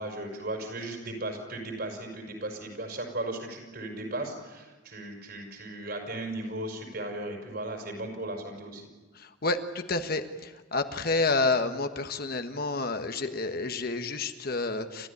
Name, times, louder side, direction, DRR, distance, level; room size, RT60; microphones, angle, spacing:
voice 1, 0.0-8.9, right 1 dB, 55° right, 3 dB, 5.6 m, -36 dB
voice 2, 9.9-15.1, left 3 dB, 55° left, 8 dB, 1.4 m, -29 dB
29.5 x 14.0 x 10.0 m, 1.2 s
head